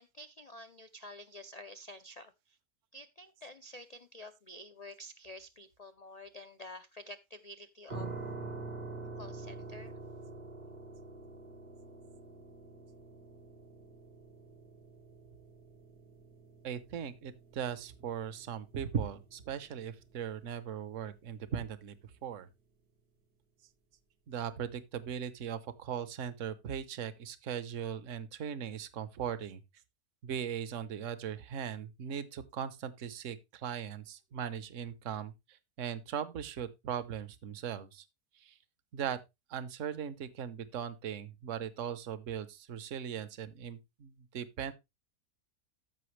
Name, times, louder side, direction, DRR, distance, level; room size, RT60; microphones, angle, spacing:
voice 1, 0.0-2.6 2.9-8.1 9.1-10.0, left 1 dB, 65° left, 0.3 m, -49 dB
sound 1, 7.9-20.8, right 3 dB, 80° right, 2.8 m, -47 dB
voice 2, 16.6-22.0 22.2-22.5 24.3-29.6 30.2-35.3 35.8-38.0 38.4-38.5 38.9-39.2 39.5-44.7, right 8 dB, 60° right, 1.2 m, -39 dB
13.5 x 5.8 x 3.2 m
omnidirectional pair, 1.6 m